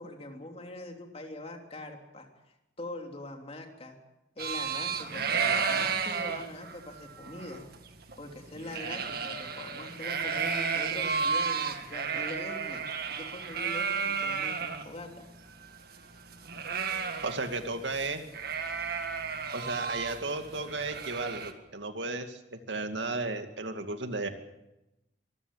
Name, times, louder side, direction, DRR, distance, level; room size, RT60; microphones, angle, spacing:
voice 1, 0.0-2.3 2.8-4.0 4.3-7.7 8.2-15.2, left 1 dB, 35° left, 3 dB, 3.2 m, -43 dB
sound 1, 4.4-14.8 15.2-15.3 15.5-17.7 17.9-18.1 18.3-21.5, right 6 dB, 55° right, 1.9 m, -33 dB
voice 2, 17.2-18.2 19.5-24.3, right 3 dB, 80° right, 7 dB, 2.4 m, -34 dB
24.5 x 15.0 x 8.7 m, 0.92 s
head